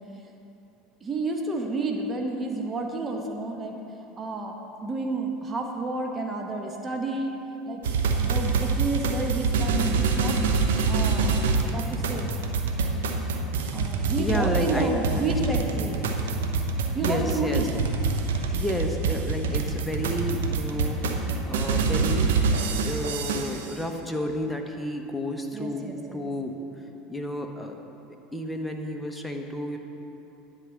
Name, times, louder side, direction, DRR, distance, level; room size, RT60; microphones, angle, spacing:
voice 1, 1.0-3.8 4.2-4.6 4.8-7.3 7.7-7.8 8.2-10.5 10.9-11.4 11.7-12.3 13.7-16.0 16.9-17.7 25.5-26.3, right 2 dB, 30° right, 2 dB, 1.1 m, -30 dB
sound 1, 7.8-23.8, right 4 dB, 75° right, 0.7 m, -26 dB
voice 2, 14.2-15.4 17.0-17.7 18.5-22.4 22.8-26.6 27.1-27.8 28.3-29.8, left 1 dB, 5° left, 2 dB, 1.1 m, -31 dB
9.9 x 4.9 x 7.6 m, 3.0 s
hypercardioid pair, 80°, 0 cm